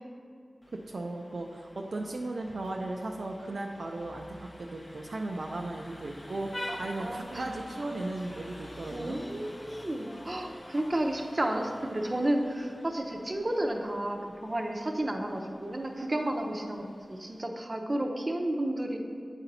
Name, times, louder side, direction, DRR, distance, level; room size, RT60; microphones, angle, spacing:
Vehicle horn car horn honking, 0.6-17.4, left 1 dB, 35° left, 0.6 m, -48 dB
voice 1, 0.9-9.2, right 2 dB, 70° right, 1 dB, 0.4 m, -36 dB
voice 2, 6.7-7.5 8.9-19.0, right 1 dB, 35° right, 2 dB, 0.7 m, -32 dB
8.8 x 4.2 x 4.0 m, 2.3 s
wide cardioid pair, 55°, 0 cm